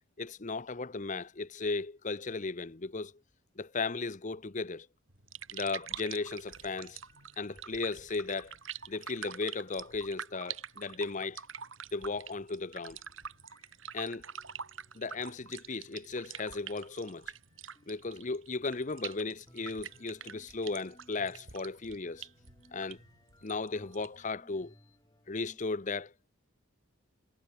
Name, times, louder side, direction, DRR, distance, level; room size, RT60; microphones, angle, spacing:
voice 1, 0.2-3.1 3.6-4.9 5.5-7.0 7.4-8.5 8.9-11.4 11.9-13.0 13.9-14.2 14.9-17.3 17.9-22.3 22.7-23.0 23.4-24.7 25.3-26.1, left 3 dB, 40° left, 0.8 m, -36 dB
sound 1, 5.1-24.3, right 8 dB, 75° right, 5.8 m, -46 dB
sound 2, 6.1-11.3 12.6-18.4 19.5-25.6, left 1 dB, 20° left, 7.5 m, -65 dB
head